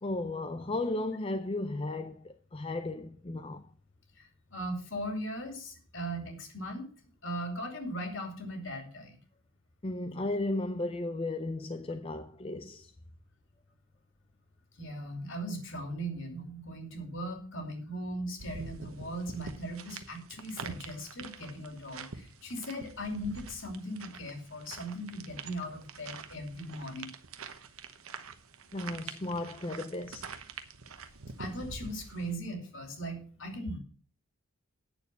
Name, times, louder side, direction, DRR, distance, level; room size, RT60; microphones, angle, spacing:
voice 1, 0.0-3.6 9.8-12.9 28.7-30.3, left 2 dB, 25° left, 0.5 m, -35 dB
voice 2, 4.2-6.9 7.2-9.2 14.8-27.1 31.4-33.8, right 1 dB, 60° left, 2.7 m, -39 dB
sound 1, 18.4-32.3, right 5 dB, 75° right, 1.0 m, -46 dB
9.3 x 6.9 x 6.7 m
head